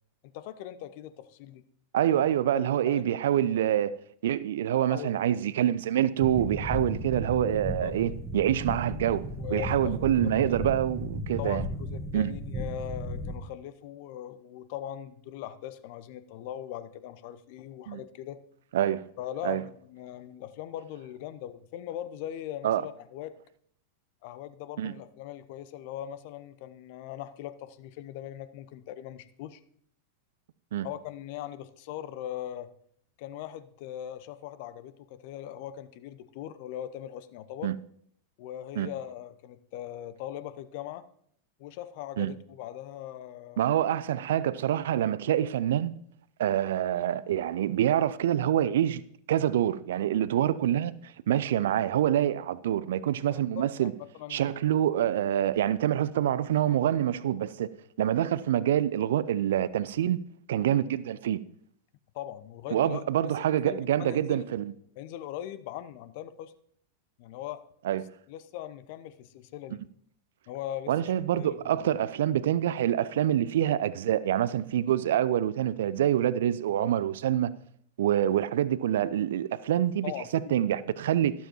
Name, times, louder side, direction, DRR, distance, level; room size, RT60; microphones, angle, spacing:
voice 1, 0.2-1.6 2.1-2.2 2.5-3.0 3.3-3.8 4.9-5.2 7.8-7.9 9.4-9.9 10.6-10.7 11.4-18.4 19.2-23.3 24.2-29.6 30.8-32.7 33.2-37.7 38.4-41.1 41.6-43.7 53.3-54.5 62.1-63.0 63.6-64.4 65.0-66.5 67.2-67.7 68.3-69.8 70.5-71.9 80.0-80.6, left 11 dB, 50° left, 0.7 m, -40 dB
voice 2, 1.9-3.9 4.2-9.2 9.5-11.7 12.1-12.3 17.9-18.0 18.7-19.0 19.4-19.6 22.6-22.8 24.8-24.9 30.7-30.9 37.6-37.8 38.8-38.9 42.2-42.3 43.6-45.9 46.4-49.0 49.3-53.9 54.3-57.7 58.0-60.2 60.5-61.4 62.7-64.7 67.8-68.0 70.9-77.5 78.0-81.3, right 11 dB, 60° right, 0.5 m, -26 dB
sound 1, 6.2-13.4, equal, 10° right, 1.6 m, -35 dB
12.5 x 12.5 x 3.0 m
figure-of-eight pair, 90°, 0 cm